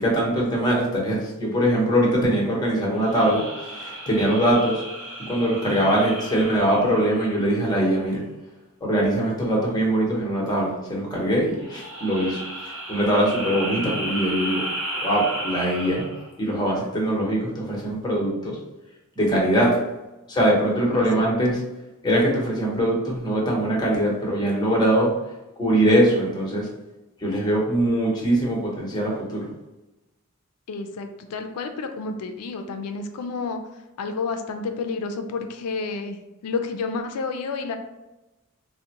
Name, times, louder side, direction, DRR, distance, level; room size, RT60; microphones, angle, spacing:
voice 1, 0.0-3.4 3.8-4.8 5.3-8.2 8.8-12.4 12.9-14.6 15.0-16.1 16.4-18.6 19.2-19.8 20.3-21.6 22.0-25.1 25.6-26.7 27.2-29.5, right 1 dB, 20° left, -3 dB, 0.9 m, -22 dB
sound 1, 3.0-7.7 11.6-16.3, right 1 dB, 60° right, 0.8 m, -34 dB
voice 2, 20.9-21.3 30.7-33.6 34.0-37.7, left 4 dB, 90° left, 6 dB, 0.4 m, -30 dB
3.6 x 2.1 x 2.8 m, 1.0 s
head